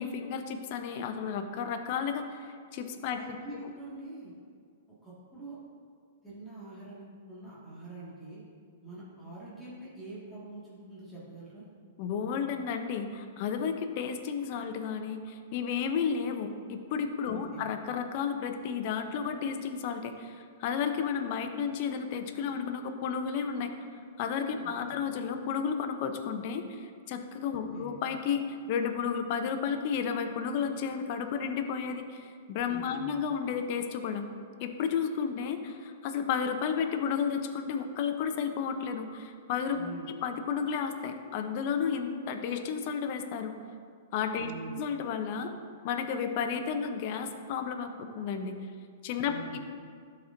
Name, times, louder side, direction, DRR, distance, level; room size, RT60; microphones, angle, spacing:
voice 1, 0.0-2.2 2.7-3.4 12.0-23.7 24.2-34.2 34.6-39.8 40.1-43.5 44.1-44.5 44.8-45.5 45.8-48.5 49.0-49.6, left 6 dB, 50° left, 7 dB, 0.7 m, -32 dB
voice 2, 3.2-4.3 5.0-5.6 6.2-8.4 8.8-11.6 17.3-17.6 24.6-24.7 27.7-27.9 32.7-33.1 39.7-40.1 44.4-44.7 49.2-49.6, right 2 dB, 5° left, -10 dB, 1.8 m, -45 dB
12.5 x 4.2 x 2.6 m, 2.1 s
hypercardioid pair, 125°, 0 cm